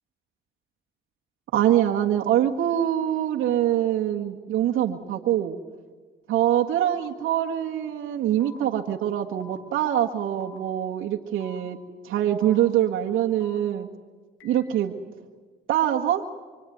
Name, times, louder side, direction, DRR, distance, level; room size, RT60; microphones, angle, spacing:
voice 1, 1.5-5.6 6.3-11.8 12.0-13.9 14.4-14.9 15.7-16.2, right 11 dB, 85° right, 0 dB, 1.8 m, -24 dB
sound 1, 6.4-6.6 7.4-7.6 8.4-8.6 9.4-9.6 10.4-10.6 11.4-11.6 12.4-12.6 13.4-13.6 14.4-14.6, left 5 dB, 80° left, 4.3 m, -48 dB
25.0 x 25.0 x 9.4 m, 1.4 s
cardioid pair, 90°, 20 cm